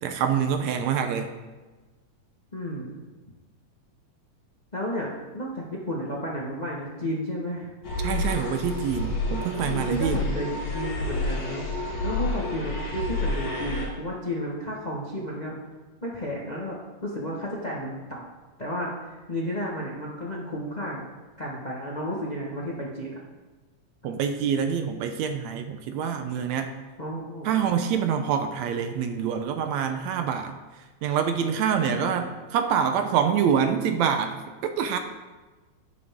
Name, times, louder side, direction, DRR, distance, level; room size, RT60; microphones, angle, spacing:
voice 1, 0.0-1.3 8.0-10.2 24.0-26.7 27.5-30.5 31.0-35.0, right 7 dB, 75° right, 7 dB, 1.9 m, -26 dB
voice 2, 2.5-3.0 4.7-7.7 9.7-11.7 12.0-15.5 16.0-18.3 18.6-21.0 21.4-23.2 27.0-27.5 31.9-32.3, equal, 45° left, -3 dB, 0.5 m, -32 dB
sound 1, 7.8-13.9, left 2 dB, 65° left, 3.8 m, -29 dB
12.0 x 9.7 x 3.6 m, 1.2 s
omnidirectional pair, 3.4 m